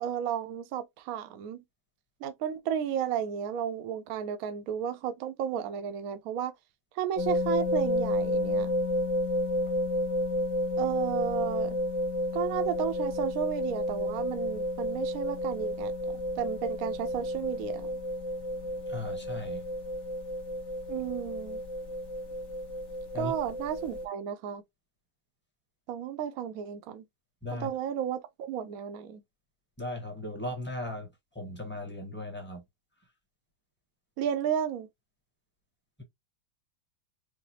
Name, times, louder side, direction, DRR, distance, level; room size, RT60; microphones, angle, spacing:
voice 1, 0.0-1.6 2.2-6.5 7.0-8.7 10.8-11.8 12.3-18.0 20.9-21.6 23.1-24.6 25.9-27.0 27.5-29.2 34.2-34.9, right 9 dB, 65° right, 0.9 m, -33 dB
sound 1, 7.2-24.1, left 1 dB, 50° left, 1.1 m, -31 dB
voice 2, 18.9-19.6 23.1-23.3 27.4-27.7 29.8-31.1 31.3-32.6, left 2 dB, 10° left, 0.9 m, -37 dB
4.8 x 2.0 x 2.8 m
omnidirectional pair, 1.9 m